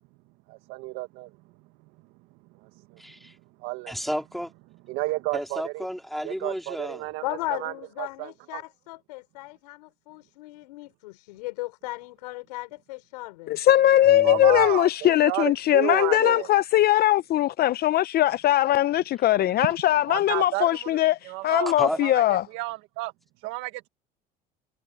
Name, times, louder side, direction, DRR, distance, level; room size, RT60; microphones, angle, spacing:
voice 1, 0.5-1.3 2.6-3.0 3.6-3.9 4.9-5.9 6.2-7.2 7.5-8.6 14.2-16.5 20.1-23.1 23.4-23.9, right 21 dB, 75° right, 1.6 m, -32 dB
voice 2, 3.0-3.4 3.9-4.5 5.3-7.1 14.1-14.6 21.8-22.0, equal, ahead, 3.8 m, -32 dB
voice 3, 7.2-14.7, left 21 dB, 90° left, 6.0 m, -37 dB
voice 4, 13.5-22.4, left 13 dB, 50° left, 0.7 m, -21 dB
supercardioid pair, 85°, 20 cm